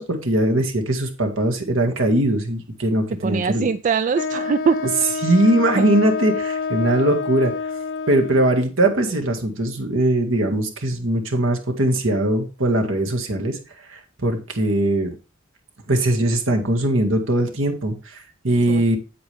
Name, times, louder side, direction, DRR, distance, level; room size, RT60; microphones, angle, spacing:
voice 1, 0.0-3.7 5.2-7.5 8.1-13.6 13.9-15.2 15.9-19.0, right 1 dB, 65° right, 4 dB, 1.9 m, -20 dB
voice 2, 3.2-4.9 5.8-5.9 18.7-18.9, right 6 dB, 40° right, 13 dB, 0.3 m, -22 dB
Wind instrument woodwind instrument, 4.1-8.6, left 5 dB, 60° left, 0.6 m, -28 dB
8.7 x 8.3 x 3.4 m, 0.31 s
head